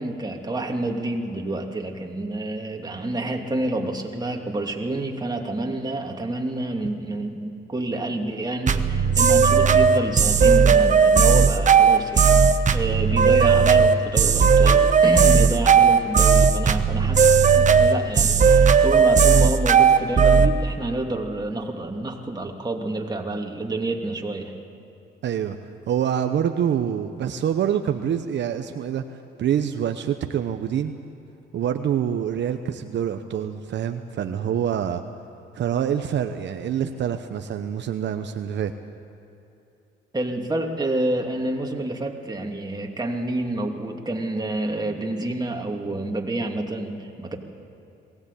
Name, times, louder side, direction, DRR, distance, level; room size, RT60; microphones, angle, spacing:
voice 1, 0.0-24.5 40.1-47.4, right 2 dB, 20° right, 1 dB, 2.7 m, -28 dB
sound 1, 8.7-20.5, right 6 dB, 40° right, 1.1 m, -16 dB
voice 2, 25.2-30.9 31.5-35.0 35.5-38.7, right 9 dB, 65° right, 7 dB, 1.0 m, -26 dB
22.0 x 17.5 x 8.4 m, 2.9 s
cardioid pair, 90°, 20 cm